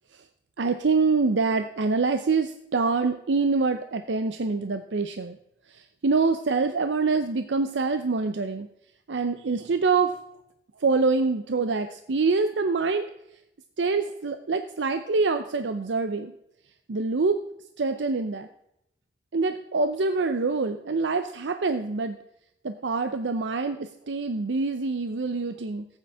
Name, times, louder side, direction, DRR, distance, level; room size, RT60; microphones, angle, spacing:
voice 1, 0.6-5.4 5.7-8.7 9.1-10.2 10.8-13.1 13.8-16.3 16.9-17.4 17.8-18.5 19.3-22.2 22.6-25.9, right 4 dB, 85° right, 8 dB, 0.6 m, -25 dB
14.5 x 8.9 x 3.5 m, 0.79 s
head